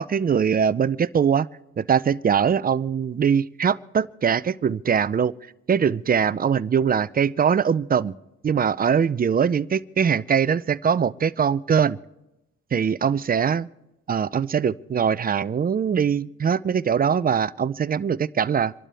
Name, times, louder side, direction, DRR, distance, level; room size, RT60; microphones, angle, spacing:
voice 1, 0.0-1.5 1.8-5.3 5.7-8.1 8.4-12.0 12.7-13.7 14.1-18.7, right 7 dB, 30° right, 17 dB, 0.5 m, -22 dB
28.0 x 12.0 x 3.4 m, 0.93 s
cardioid pair, 90°, 30 cm